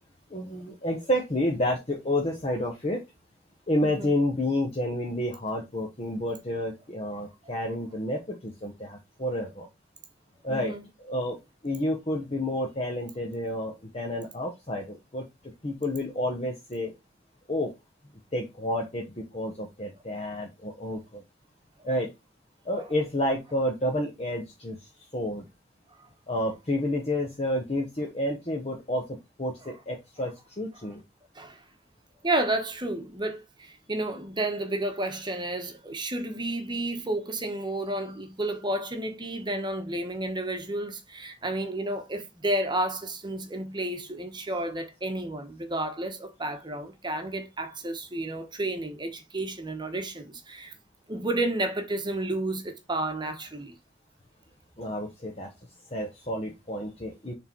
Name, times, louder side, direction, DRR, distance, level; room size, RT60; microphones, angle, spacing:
voice 1, 0.3-3.0 3.7-9.7 10.4-10.7 11.0-11.4 11.6-15.2 15.6-16.9 17.5-17.7 18.3-21.2 21.8-22.1 22.6-24.8 25.1-25.4 26.3-31.0 54.8-55.5 55.9-57.3, left 1 dB, 35° left, 1.1 m, -30 dB
voice 2, 10.5-10.8 29.6-29.7 31.3-31.6 32.2-50.7 51.1-53.7, right 1 dB, 25° right, 1.2 m, -31 dB
6.6 x 3.7 x 4.6 m
head